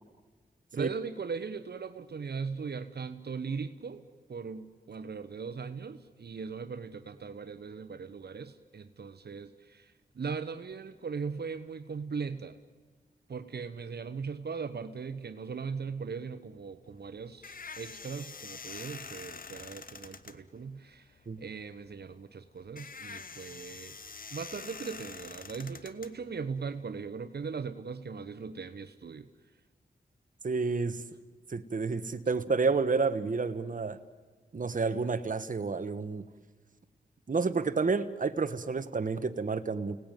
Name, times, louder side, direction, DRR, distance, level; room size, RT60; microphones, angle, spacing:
voice 1, 0.7-4.0 4.3-12.6 13.3-24.0 24.3-29.3, right 5 dB, 65° right, 10 dB, 1.2 m, -39 dB
sound 1, 16.8-26.8, left 5 dB, 50° left, 1.1 m, -46 dB
voice 2, 30.4-31.0 31.5-34.0 34.5-36.2 37.3-40.0, right 4 dB, 50° right, 10 dB, 1.2 m, -30 dB
30.0 x 19.0 x 9.2 m, 1.4 s
cardioid pair, 50°, 18 cm